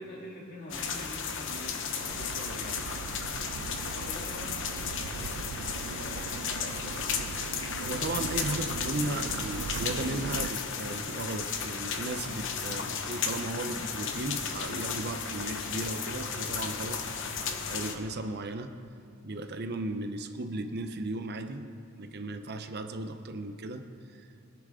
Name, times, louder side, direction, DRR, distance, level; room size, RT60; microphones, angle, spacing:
voice 1, 0.0-2.9 3.6-4.7 5.0-7.1, equal, 45° left, -3 dB, 2.6 m, -45 dB
sound 1, 0.7-18.0, left 6 dB, 60° left, 1.0 m, -34 dB
sound 2, 2.0-10.5, right 7 dB, 80° right, 0.3 m, -40 dB
voice 2, 7.8-17.0 17.7-18.7 19.2-21.7 22.0-24.3, right 2 dB, 50° right, 7 dB, 0.7 m, -36 dB
22.0 x 10.5 x 3.8 m, 2.5 s
head